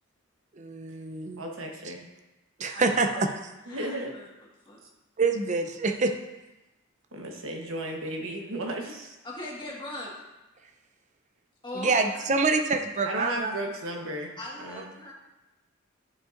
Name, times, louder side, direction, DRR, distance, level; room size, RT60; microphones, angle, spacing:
voice 1, 0.6-1.4 2.6-3.3 5.2-6.1 11.7-13.5, right 3 dB, 35° right, 6 dB, 0.5 m, -26 dB
voice 2, 1.4-2.0 3.7-4.1 7.1-9.1 13.0-14.3 14.6-14.9, right 1 dB, 75° right, 1 dB, 1.1 m, -34 dB
voice 3, 2.7-3.2 3.7-4.3 4.6-4.8 9.2-10.1 11.6-11.9 14.4-15.1, left 2 dB, 25° left, -4 dB, 1.7 m, -40 dB
12.0 x 5.1 x 2.5 m, 1.0 s
head